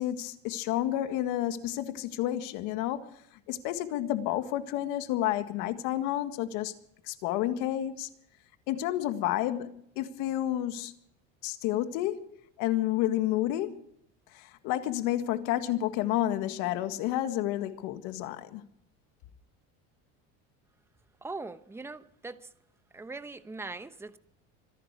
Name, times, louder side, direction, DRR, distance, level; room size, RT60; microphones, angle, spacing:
voice 1, 0.0-3.1 3.5-6.7 7.0-8.1 8.7-10.9 11.4-12.3 12.6-13.8 14.3-18.6, left 13 dB, 75° left, 1.8 m, -30 dB
voice 2, 21.2-22.5 22.9-24.2, right 3 dB, 10° right, 1.0 m, -41 dB
25.0 x 11.0 x 4.8 m
cardioid pair, 140°, 30 cm